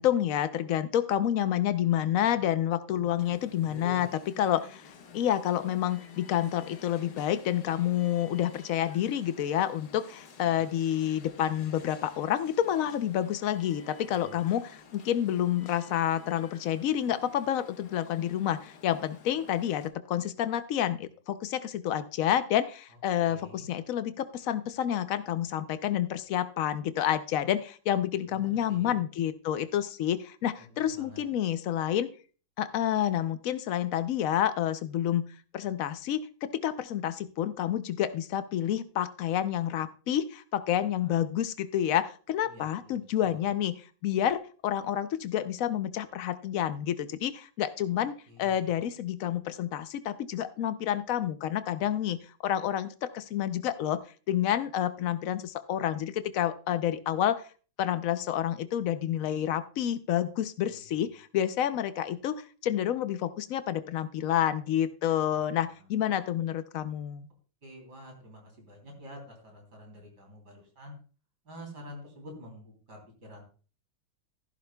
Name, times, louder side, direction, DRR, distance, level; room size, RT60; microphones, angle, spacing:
voice 1, 0.0-4.1 4.4-32.1 32.6-35.2 35.5-43.7 44.0-48.1 48.4-57.4 57.8-67.3, left 11 dB, 75° left, 11 dB, 0.7 m, -29 dB
voice 2, 2.9-3.3 3.6-4.0 10.4-10.7 14.1-14.4 23.2-23.7 28.3-28.9 30.6-31.2 40.8-41.2 42.4-42.9 43.2-43.5 47.9-48.0 48.3-48.8 60.7-61.0 67.6-71.0 71.5-73.4, equal, 55° right, 2 dB, 3.8 m, -48 dB
Alarm, 3.2-19.9, left 5 dB, 55° left, 1.4 m, -52 dB
14.5 x 11.5 x 2.2 m, 0.37 s
omnidirectional pair, 2.1 m